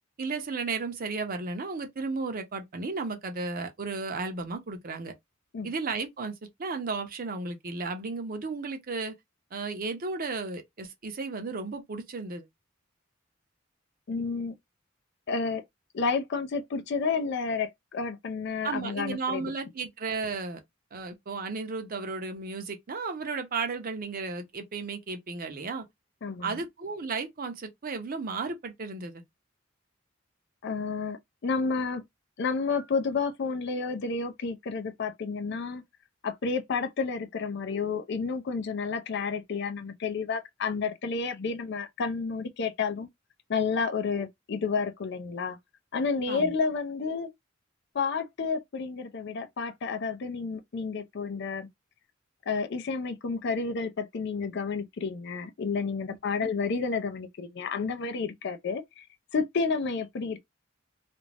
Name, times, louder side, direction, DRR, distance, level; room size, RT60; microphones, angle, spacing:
voice 1, 0.2-5.1 5.6-6.3 6.6-9.1 9.5-12.4 18.6-20.6 20.9-25.8 26.4-29.2 46.3-46.5, right 4 dB, 45° right, 0.6 m, -34 dB
voice 2, 14.1-14.5 15.3-15.6 15.9-19.5 26.2-26.6 30.6-32.0 32.4-35.8 36.2-43.1 43.5-45.6 45.9-47.3 47.9-51.7 52.5-59.1 59.3-60.4, left 4 dB, 60° left, 0.4 m, -30 dB
2.5 x 2.1 x 3.2 m
head